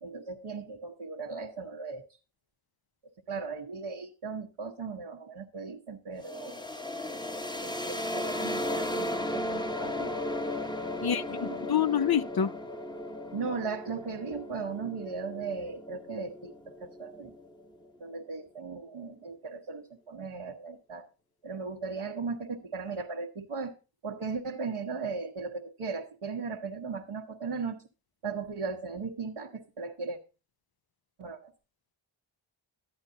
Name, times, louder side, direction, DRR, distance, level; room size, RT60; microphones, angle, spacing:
voice 1, 0.0-2.1 3.3-6.6 7.5-9.1 9.3-10.1 11.0-11.8 13.3-17.3 18.0-21.1 21.4-23.7 24.0-27.8 28.2-30.2 31.2-31.5, right 4 dB, 85° right, 1.2 m, -37 dB
sound 1, 6.2-17.9, left 1 dB, 10° left, 1.0 m, -36 dB
voice 2, 11.0-12.5, left 8 dB, 50° left, 0.6 m, -27 dB
12.5 x 8.9 x 2.7 m
cardioid pair, 45°, 49 cm